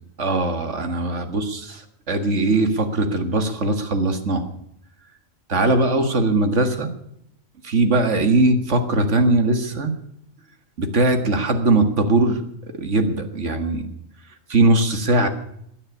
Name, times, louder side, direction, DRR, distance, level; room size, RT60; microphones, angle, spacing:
voice 1, 0.2-1.8 2.1-4.5 5.5-6.9 7.6-9.9 10.8-12.4 12.8-13.9 14.5-15.3, right 2 dB, 65° right, 8 dB, 2.1 m, -20 dB
17.0 x 9.9 x 8.3 m, 0.74 s
omnidirectional pair, 1.3 m